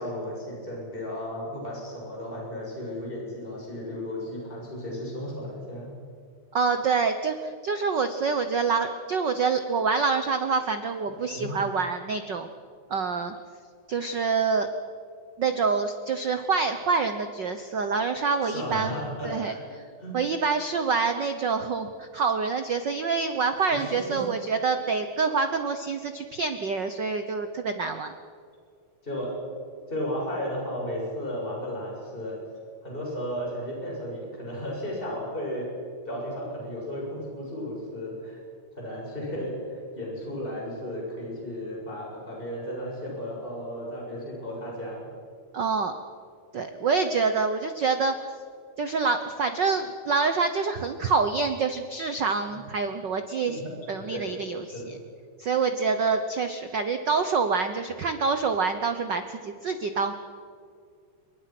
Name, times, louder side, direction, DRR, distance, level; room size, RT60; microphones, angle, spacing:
voice 1, 0.0-5.9 11.1-11.5 18.4-19.6 20.0-20.1 23.7-24.2 29.0-29.3 29.9-32.4 32.8-35.7 36.1-38.4 38.8-45.1 52.5-52.6 53.5-53.6 54.1-54.3 54.7-54.9, equal, 15° left, -3 dB, 7.0 m, -34 dB
voice 2, 6.5-12.5 12.9-13.3 13.9-14.7 15.4-19.0 19.2-19.8 20.1-28.1 45.5-46.0 46.5-48.3 48.8-53.6 53.9-55.0 55.4-60.2, right 5 dB, 70° right, 8 dB, 1.0 m, -26 dB
27.0 x 23.5 x 6.0 m, 2.2 s
omnidirectional pair, 3.5 m